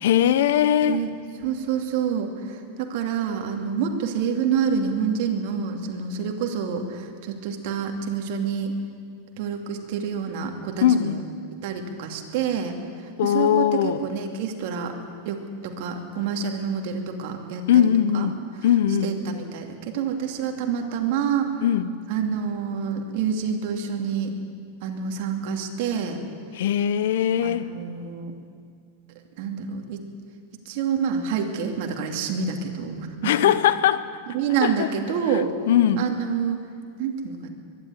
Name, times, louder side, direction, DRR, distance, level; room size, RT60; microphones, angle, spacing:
voice 1, 0.0-1.0 10.8-11.2 13.2-14.0 17.7-19.1 21.6-21.9 26.5-27.7 33.2-34.1 34.6-34.9 35.7-36.1, left 10 dB, 75° left, 15 dB, 0.9 m, -20 dB
voice 2, 0.8-1.1 1.4-8.7 9.4-11.2 11.6-12.7 13.2-14.9 15.2-17.6 18.1-18.3 19.0-21.5 22.1-24.3 24.8-26.2 27.4-28.3 29.4-30.0 30.7-33.3 34.3-35.5 36.0-36.7 37.0-37.5, right 7 dB, 55° right, 3 dB, 2.7 m, -27 dB
23.0 x 11.5 x 10.0 m, 2.2 s
supercardioid pair, 150°, 0 cm